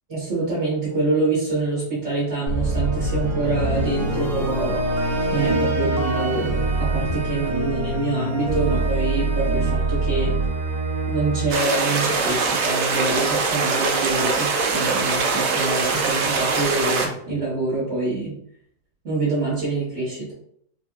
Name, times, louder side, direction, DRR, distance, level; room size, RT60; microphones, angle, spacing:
voice 1, 0.1-4.8 5.3-10.3 11.1-18.3 19.0-20.3, right 3 dB, 45° right, -10 dB, 1.8 m, -26 dB
sound 1, 2.5-12.6, right 2 dB, 20° right, 1.2 m, -24 dB
sound 2, 11.5-17.1, right 4 dB, 80° right, 1.3 m, -22 dB
4.2 x 2.6 x 2.3 m, 0.68 s
omnidirectional pair, 1.8 m